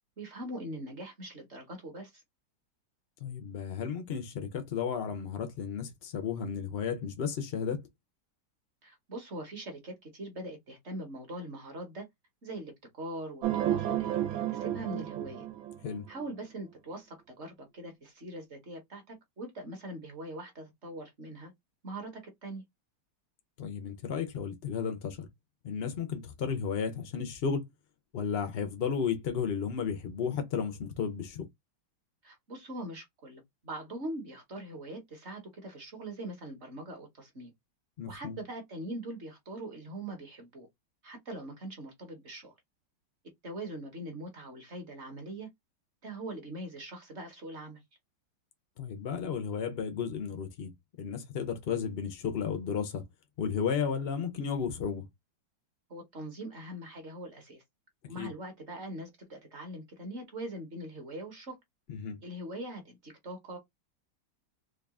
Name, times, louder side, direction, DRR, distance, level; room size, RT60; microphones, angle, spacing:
voice 1, 0.2-2.2 8.8-12.1 12.4-14.2 14.5-15.5 16.1-21.5 21.8-22.6 32.2-37.5 38.0-40.7 41.0-42.5 43.4-45.5 46.0-47.8 55.9-57.6 58.0-61.6 62.2-63.6, right 1 dB, 45° right, 1.0 m, -42 dB
voice 2, 3.2-7.8 15.8-16.1 23.6-25.3 25.6-27.6 28.1-31.4 38.0-38.4 48.8-50.7 51.0-53.0 53.4-55.0 58.2-58.3 61.9-62.2, left 6 dB, 80° left, 0.5 m, -33 dB
sound 1, 13.4-16.2, right 12 dB, 80° right, 1.4 m, -32 dB
3.8 x 2.3 x 3.6 m
omnidirectional pair, 2.1 m